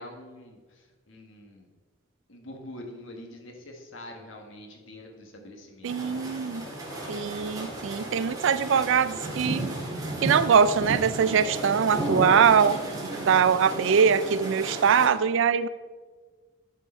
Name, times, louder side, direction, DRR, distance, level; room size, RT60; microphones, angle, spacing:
voice 1, 0.0-1.7 2.3-6.2 6.6-7.3 8.5-8.7, left 1 dB, 70° left, 3 dB, 1.5 m, -45 dB
sound 1, 5.8-15.1, right 1 dB, 20° right, 2.0 m, -33 dB
voice 2, 5.8-6.7 7.1-9.7 10.2-12.8 13.2-15.7, right 6 dB, 65° right, 15 dB, 0.4 m, -22 dB
12.5 x 4.9 x 4.4 m, 1.4 s
head